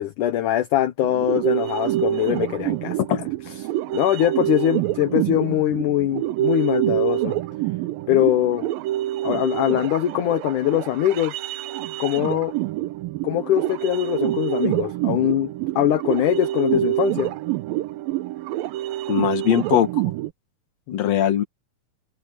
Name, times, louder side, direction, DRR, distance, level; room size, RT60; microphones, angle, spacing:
voice 1, 0.0-3.0 3.9-7.4 8.1-8.7 9.2-11.3 12.0-12.5 13.2-15.5 15.8-17.3 21.0-21.2, left 12 dB, 70° left, 2.4 m, -22 dB
sound 1, 1.0-20.3, right 14 dB, 85° right, 2.5 m, -26 dB
voice 2, 19.1-20.1 20.9-21.4, left 10 dB, 55° left, 2.7 m, -21 dB
omnidirectional pair, 4.1 m